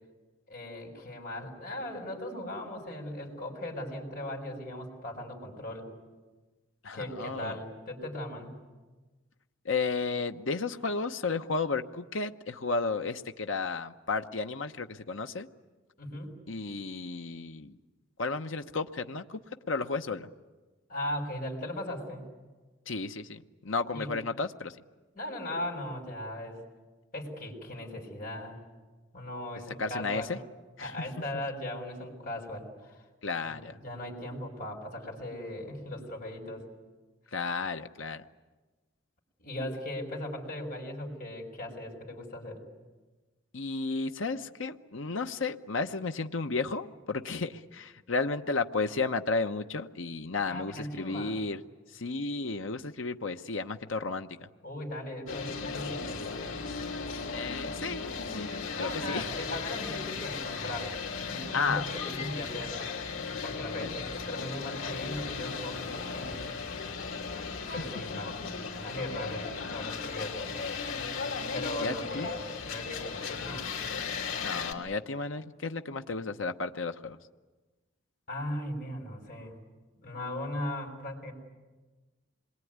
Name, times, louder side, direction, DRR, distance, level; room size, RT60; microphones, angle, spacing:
voice 1, 0.5-5.9 6.9-8.6 16.0-16.4 20.9-22.3 23.9-24.1 25.1-26.6 27.1-28.6 29.1-30.4 30.8-33.0 33.4-36.6 39.4-42.6 50.5-51.4 54.6-56.4 58.8-60.9 61.2-62.8 63.4-66.4 67.7-68.4 68.7-69.4 69.7-70.5 71.5-73.8 78.3-79.5 80.0-81.3, left 1 dB, 40° left, 1 dB, 6.5 m, -38 dB
voice 2, 6.8-7.6 9.6-15.5 16.5-17.7 18.2-19.4 19.7-20.3 22.9-24.8 29.8-30.4 30.8-30.9 33.2-33.8 37.3-38.2 43.5-51.6 51.9-54.5 57.3-58.5 58.8-59.2 61.5-61.8 63.8-63.9 71.8-72.3 74.4-77.2, left 4 dB, 70° left, 7 dB, 1.0 m, -33 dB
sound 1, 55.3-74.7, left 5 dB, 85° left, 3.1 m, -36 dB
27.0 x 22.0 x 9.6 m, 1.2 s
head